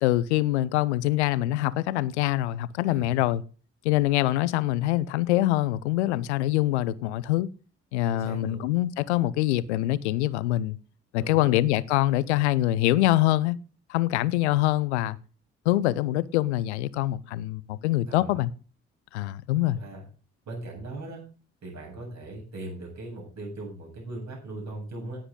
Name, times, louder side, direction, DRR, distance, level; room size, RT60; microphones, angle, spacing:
voice 1, 0.0-3.4 3.8-7.5 7.9-10.8 11.1-13.6 13.9-15.2 15.7-18.5 19.1-19.8, left 15 dB, 75° left, 0.7 m, -24 dB
voice 2, 2.9-3.3 8.1-8.6 11.2-11.5 18.0-18.4 19.7-20.0 20.5-21.2 21.6-25.2, right 2 dB, 55° right, 7.8 m, -39 dB
17.5 x 8.0 x 3.8 m
figure-of-eight pair, 45°, 34 cm